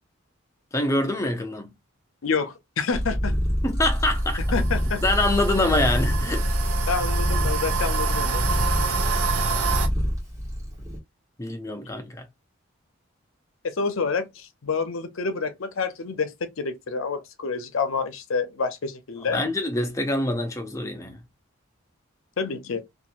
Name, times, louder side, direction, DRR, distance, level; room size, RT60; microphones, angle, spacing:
voice 1, 0.7-1.7 3.6-4.4 5.0-6.5 11.4-12.3 19.3-21.2, left 1 dB, 15° left, 0.5 m, -25 dB
voice 2, 2.2-3.3 4.5-5.0 6.9-8.4 13.6-16.3 16.6-19.4 22.4-22.8, left 5 dB, 70° left, 0.6 m, -28 dB
Purr, 2.9-11.0, equal, 15° right, 1.3 m, -25 dB
sound 1, 3.9-9.9, right 6 dB, 85° right, 0.6 m, -29 dB
2.9 x 2.5 x 2.4 m
head